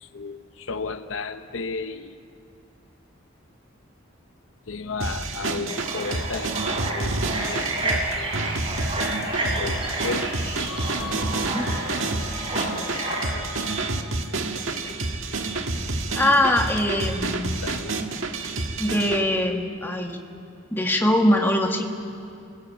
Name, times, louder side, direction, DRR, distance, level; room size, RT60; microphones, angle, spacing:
voice 1, 0.0-2.1 4.7-8.5 9.0-10.3 12.6-13.5 13.8-13.9 14.5-15.0 17.6-17.9, left 4 dB, 75° left, 9 dB, 0.9 m, -35 dB
sound 1, 5.0-19.2, right 3 dB, 75° right, 1.7 m, -29 dB
sound 2, 5.7-13.3, right 1 dB, 25° right, 4.4 m, -31 dB
sound 3, 10.2-14.3, left 2 dB, 40° left, 4.4 m, -39 dB
voice 2, 11.4-11.7 16.1-17.6 18.8-20.2 20.7-21.8, left 1 dB, 10° left, 2 dB, 1.7 m, -22 dB
29.0 x 20.5 x 8.5 m, 2.5 s
head